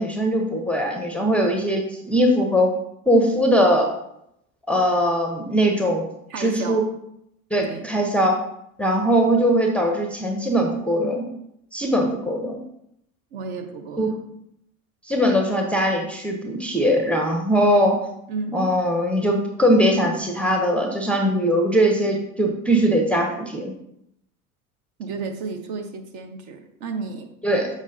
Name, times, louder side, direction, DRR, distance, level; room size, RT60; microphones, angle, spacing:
voice 1, 0.0-2.7 3.1-3.9 4.7-6.1 6.4-6.8 7.5-8.3 8.8-11.2 11.7-12.6 14.0-14.1 15.1-18.0 18.5-23.7 27.4-27.7, equal, 5° left, 2 dB, 0.6 m, -20 dB
voice 2, 6.3-6.8 7.7-7.9 13.3-14.2 18.3-18.6 25.0-27.3, right 4 dB, 45° right, 5 dB, 0.9 m, -32 dB
7.2 x 5.0 x 2.6 m, 0.79 s
figure-of-eight pair, 75°, 44 cm